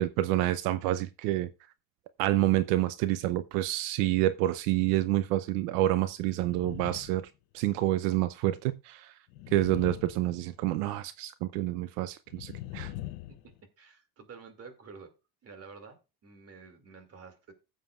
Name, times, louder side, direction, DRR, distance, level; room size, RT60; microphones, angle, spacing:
voice 1, 0.0-1.5 2.2-9.1 9.5-12.9, right 15 dB, 80° right, 0.7 m, -28 dB
sound 1, 6.4-7.3 7.6-7.8 9.3-10.8 12.3-13.6, left 14 dB, 65° left, 0.9 m, -42 dB
voice 2, 13.8-15.1 15.4-17.5, right 5 dB, 30° right, 2.4 m, -50 dB
15.5 x 7.5 x 2.4 m
supercardioid pair, 135°, 46 cm